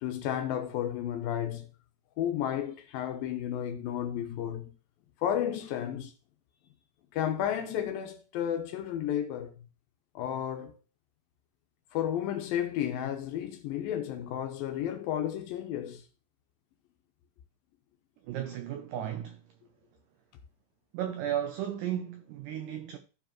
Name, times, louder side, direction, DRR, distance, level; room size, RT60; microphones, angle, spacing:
voice 1, 0.0-1.7 2.2-4.7 5.2-6.1 7.1-9.5 10.2-10.8 11.9-16.0, left 10 dB, 75° left, 2.4 m, -32 dB
voice 2, 18.2-19.5 20.9-23.0, right 10 dB, 85° right, 1.8 m, -34 dB
14.0 x 4.8 x 2.9 m
omnidirectional pair, 4.5 m